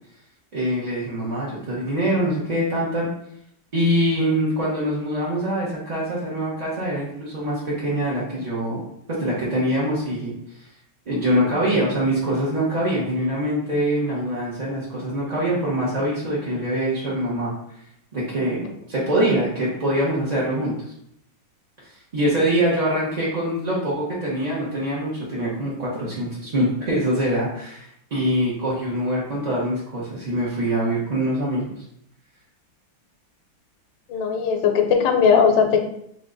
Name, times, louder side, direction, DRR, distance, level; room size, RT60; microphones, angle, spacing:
voice 1, 0.5-3.1 3.7-8.8 9.2-10.3 11.1-17.5 18.1-20.8 22.1-31.7, right 1 dB, 35° right, -7 dB, 0.6 m, -24 dB
voice 2, 34.1-35.8, left 6 dB, 75° left, 4 dB, 1.3 m, -18 dB
3.5 x 3.1 x 3.8 m, 0.73 s
omnidirectional pair, 2.1 m